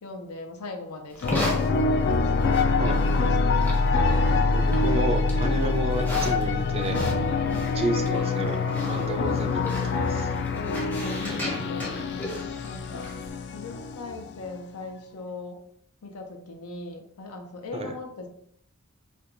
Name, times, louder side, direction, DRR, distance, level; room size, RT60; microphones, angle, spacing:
voice 1, 0.0-2.6 2.9-3.6 7.4-7.8 10.0-12.1 12.6-13.1 13.5-15.6 16.0-18.3, left 3 dB, 85° left, 3 dB, 0.6 m, -39 dB
Livestock farm animals working animals, 1.1-13.3, equal, 10° left, 0.6 m, -37 dB
sound 1, 1.2-14.6, left 3 dB, 50° left, 0.3 m, -25 dB
voice 2, 4.5-7.0 7.7-10.3 17.7-17.9, right 1 dB, 25° right, 5 dB, 0.3 m, -31 dB
4.4 x 2.3 x 2.5 m, 0.67 s
head